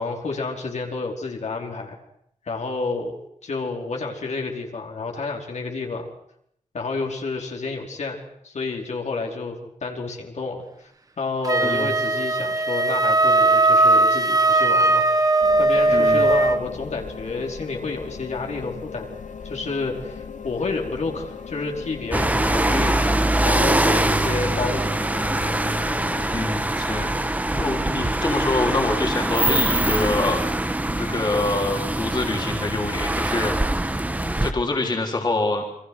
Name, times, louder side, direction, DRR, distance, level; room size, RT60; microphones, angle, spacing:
voice 1, 0.0-2.0 2.4-3.1 3.4-6.1 6.7-10.9 11.2-15.0 15.6-19.1 19.4-23.1 23.4-25.0, left 3 dB, 65° left, 1 dB, 4.8 m, -30 dB
Wind instrument woodwind instrument, 11.4-16.6, right 2 dB, 30° right, 1.7 m, -18 dB
voice 2, 11.6-11.9 15.9-16.2 26.3-27.2 27.5-30.4 30.9-33.5 34.4-35.6, left 2 dB, 35° left, 1 dB, 4.2 m, -25 dB
sound 1, 15.4-26.3, left 6 dB, 80° left, 2.2 m, -38 dB
sound 2, 22.1-34.5, right 1 dB, 10° right, 1.7 m, -23 dB
29.5 x 25.5 x 6.3 m, 0.73 s
wide cardioid pair, 175°, 13 cm